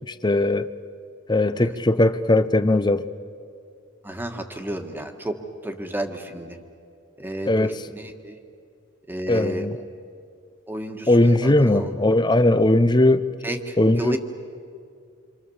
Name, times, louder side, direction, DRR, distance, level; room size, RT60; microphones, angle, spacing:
voice 1, 0.2-0.7 1.3-3.0 7.5-7.8 9.3-9.7 11.1-13.2 13.8-14.2, left 1 dB, 20° left, 0.7 m, -19 dB
voice 2, 4.0-5.4 5.6-6.6 7.2-8.4 9.1-9.8 10.7-11.9 13.4-14.2, right 1 dB, 10° right, 1.6 m, -32 dB
27.0 x 26.5 x 7.2 m
head